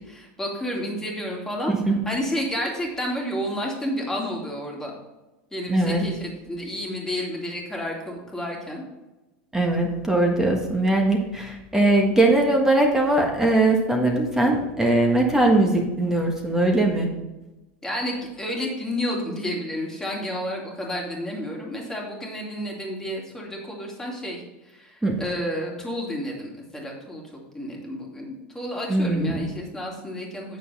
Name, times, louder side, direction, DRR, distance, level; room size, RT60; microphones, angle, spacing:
voice 1, 0.1-4.9 5.5-8.8 17.8-27.2 27.5-30.6, equal, 10° left, -1 dB, 2.5 m, -31 dB
voice 2, 5.7-6.0 9.5-17.1 25.0-25.2 28.9-29.4, right 2 dB, 10° right, 1 dB, 1.5 m, -20 dB
8.4 x 6.7 x 4.2 m, 1.1 s
supercardioid pair, 125°, 6 cm